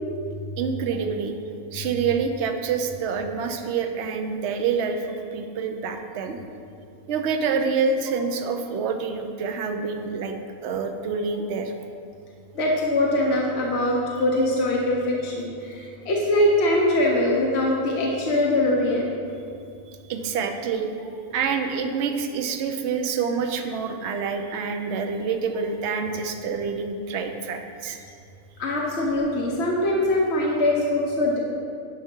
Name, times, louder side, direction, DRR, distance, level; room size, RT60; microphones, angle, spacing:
voice 1, 0.6-1.3 1.7-6.4 7.1-10.3 10.6-11.7 20.1-20.9 21.3-28.0, right 5 dB, 60° right, 5 dB, 0.9 m, -27 dB
voice 2, 12.5-19.1 28.6-31.4, left 1 dB, 55° left, -3 dB, 1.1 m, -22 dB
10.5 x 5.8 x 3.7 m, 2.4 s
omnidirectional pair, 1.4 m